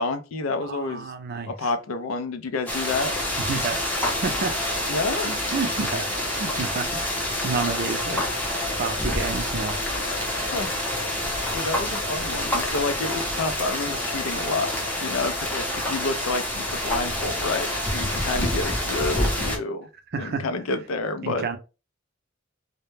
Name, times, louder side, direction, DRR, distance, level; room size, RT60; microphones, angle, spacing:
voice 1, 0.0-1.1 1.5-3.2 4.9-5.3 10.5-10.7 11.5-14.7 15.0-19.9 20.2-21.5, left 3 dB, 85° left, 0.4 m, -29 dB
voice 2, 0.6-1.7 3.4-3.8 4.2-4.8 5.2-6.1 6.4-8.3 8.8-9.8 10.3-10.5 20.1-20.4 21.2-21.6, right 4 dB, 50° right, 0.4 m, -30 dB
sound 1, 2.7-19.6, left 1 dB, 10° left, 0.6 m, -27 dB
2.1 x 2.1 x 3.1 m
head